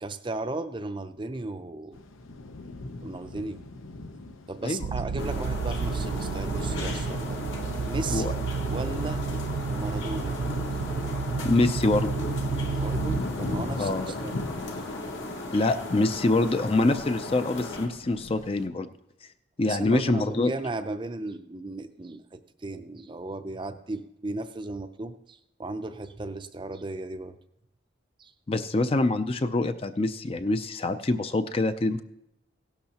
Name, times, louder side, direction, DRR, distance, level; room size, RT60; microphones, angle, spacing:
voice 1, 0.0-2.0 3.0-3.6 4.5-7.4 7.8-8.3 8.7-9.3 9.7-10.4 12.7-14.4 14.7-14.8 19.7-27.4 28.2-28.3, right 2 dB, 25° right, 9 dB, 0.5 m, -35 dB
sound 1, 1.9-18.7, left 2 dB, 85° left, 0.8 m, -41 dB
sound 2, 4.8-13.2, right 4 dB, 85° right, 0.4 m, -30 dB
sound 3, 5.2-17.9, left 2 dB, 70° left, 1.9 m, -36 dB
voice 2, 11.4-12.1 13.8-14.0 15.5-18.9 19.6-20.5 28.5-32.0, left 2 dB, 30° left, 10 dB, 0.4 m, -25 dB
16.5 x 12.0 x 2.9 m, 0.81 s
head